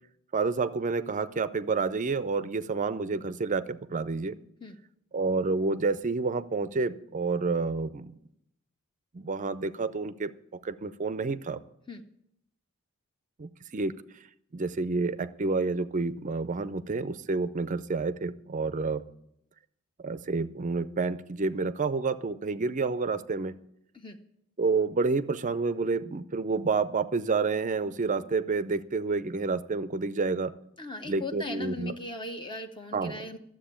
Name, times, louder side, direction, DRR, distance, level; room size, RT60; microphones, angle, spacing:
voice 1, 0.3-4.4 5.1-8.1 9.1-10.3 10.6-11.6 13.4-13.9 14.5-19.0 20.0-23.6 24.6-30.5 31.0-31.9 32.9-33.1, right 4 dB, 35° right, 15 dB, 0.5 m, -29 dB
voice 2, 30.8-33.4, left 2 dB, 20° left, 6 dB, 0.7 m, -38 dB
13.0 x 7.6 x 8.8 m, 0.77 s
head